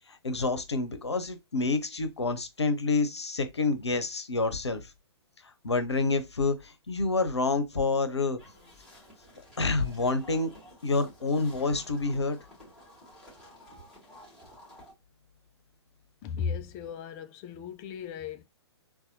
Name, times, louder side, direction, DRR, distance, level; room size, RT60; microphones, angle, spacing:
voice 1, 0.1-4.9 5.6-8.4 9.4-10.5 10.8-12.4, left 3 dB, 75° left, 0.7 m, -28 dB
sound 1, 8.4-14.9, left 1 dB, ahead, 2.2 m, -53 dB
voice 2, 16.2-18.4, left 6 dB, 20° left, 0.4 m, -36 dB
4.0 x 2.2 x 2.7 m
figure-of-eight pair, 115°, 14 cm